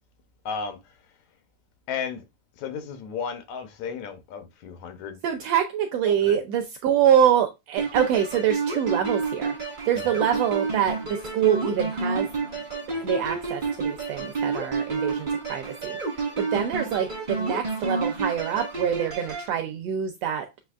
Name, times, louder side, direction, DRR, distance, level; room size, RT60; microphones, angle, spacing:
voice 1, 0.5-0.8 1.9-2.2 2.6-5.2 6.1-6.4 10.0-10.3, left 6 dB, 75° left, 2.0 m, -34 dB
voice 2, 5.2-9.6 9.9-12.3 12.9-20.5, right 9 dB, 80° right, 1.4 m, -25 dB
sound 1, 7.8-19.5, right 4 dB, 50° right, 0.5 m, -30 dB
7.7 x 2.8 x 2.3 m
omnidirectional pair, 3.3 m